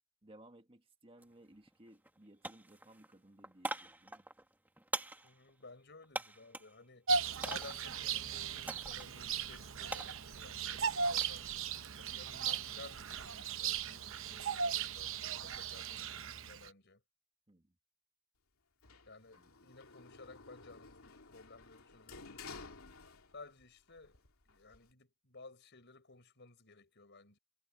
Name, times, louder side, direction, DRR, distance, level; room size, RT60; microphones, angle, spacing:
voice 1, 0.2-4.3 17.5-17.7 19.3-19.7, right 1 dB, 25° right, 1.6 m, -60 dB
sound 1, 1.2-1.3 1.7-2.2 2.4-6.8 7.4-7.9 8.7-9.1 9.4-11.4 11.8-12.2, right 2 dB, 10° right, 1.8 m, -44 dB
voice 2, 5.2-7.1 7.4-11.5 12.0-17.0 19.1-22.8 23.3-24.2 24.5-27.4, left 3 dB, 55° left, 5.5 m, -56 dB
Bird vocalization bird call bird song, 7.1-16.7, right 6 dB, 65° right, 0.8 m, -37 dB
Sliding door, 18.8-23.6 24.0-24.9, left 4 dB, 85° left, 2.8 m, -53 dB
head